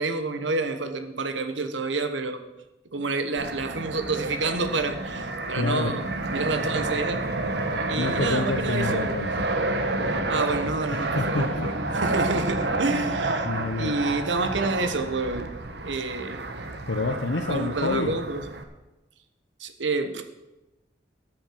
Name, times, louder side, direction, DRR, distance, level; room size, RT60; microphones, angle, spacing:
voice 1, 0.0-2.4 2.9-7.2 7.5-7.6 7.9-9.1 10.3-13.5 13.8-15.5 15.8-16.4 17.5-18.4 19.6-20.2, right 3 dB, 80° right, 8 dB, 1.2 m, -28 dB
Fixed-wing aircraft airplane, 3.4-18.6, right 2 dB, 60° right, 1.1 m, -29 dB
voice 2, 5.6-6.0 8.0-9.5 10.9-11.7 12.8-13.0 13.4-14.0 16.9-18.1, left 3 dB, 80° left, 3 dB, 0.9 m, -28 dB
13.5 x 6.3 x 7.7 m, 1.0 s
head